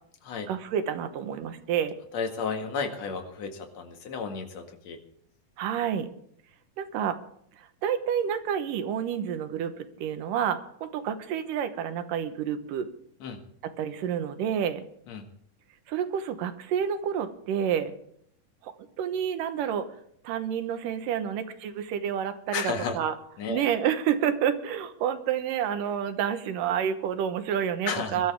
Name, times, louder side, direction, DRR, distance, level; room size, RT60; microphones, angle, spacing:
voice 1, 0.5-2.0 5.6-6.1 6.8-7.2 7.6-9.7 10.0-12.9 13.6-14.8 15.9-17.9 18.6-19.9 20.2-23.1 23.5-28.3, right 9 dB, 90° right, 10 dB, 2.8 m, -29 dB
voice 2, 2.1-5.0 13.2-13.4 15.1-15.2 22.5-23.0 23.4-23.6 27.9-28.2, left 5 dB, 55° left, 4 dB, 2.9 m, -33 dB
22.0 x 13.0 x 3.6 m, 0.67 s
omnidirectional pair, 3.8 m